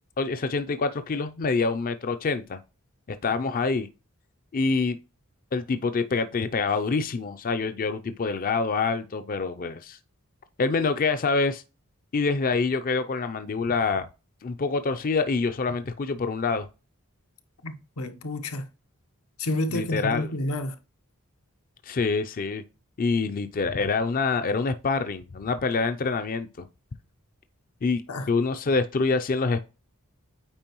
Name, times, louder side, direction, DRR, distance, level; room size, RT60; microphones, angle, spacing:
voice 1, 0.2-2.6 3.1-3.9 4.5-5.0 5.5-10.0 10.6-11.6 12.1-14.1 14.4-16.7 19.7-20.3 21.8-22.6 23.0-26.5 27.8-28.0 28.3-29.6, left 4 dB, 40° left, 0.4 m, -26 dB
voice 2, 17.6-18.6 19.4-20.7 28.1-28.2, left 1 dB, 85° left, 1.0 m, -29 dB
8.8 x 4.6 x 3.0 m
head